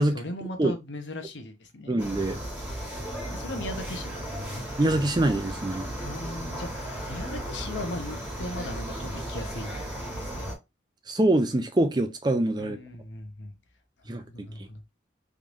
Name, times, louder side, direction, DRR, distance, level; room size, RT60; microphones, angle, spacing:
voice 1, 0.1-2.0 3.3-4.3 6.0-10.5 12.6-13.5 14.0-14.8, left 1 dB, 75° left, 0.9 m, -38 dB
voice 2, 1.9-2.4 4.8-5.9 11.1-12.8 14.1-14.7, right 1 dB, 20° right, 0.5 m, -24 dB
sound 1, 2.0-10.5, equal, 5° right, 1.3 m, -35 dB
3.7 x 3.1 x 2.5 m
head